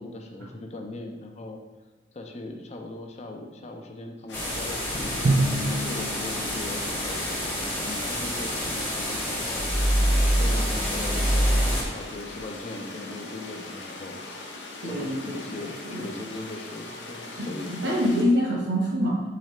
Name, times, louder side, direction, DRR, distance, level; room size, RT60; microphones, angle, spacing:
voice 1, 0.0-1.6 2.1-14.2 14.8-18.0, left 2 dB, 35° left, 3 dB, 0.5 m, -39 dB
sound 1, 4.3-18.3, left 2 dB, 80° left, 0.6 m, -40 dB
sound 2, 4.3-11.8, equal, 10° left, 0.9 m, -26 dB
Drum, 5.2-7.4, right 2 dB, 45° right, 0.4 m, -27 dB
voice 2, 14.8-16.0 17.4-19.2, equal, 80° right, -2 dB, 1.1 m, -26 dB
4.1 x 3.7 x 3.2 m, 1.2 s
head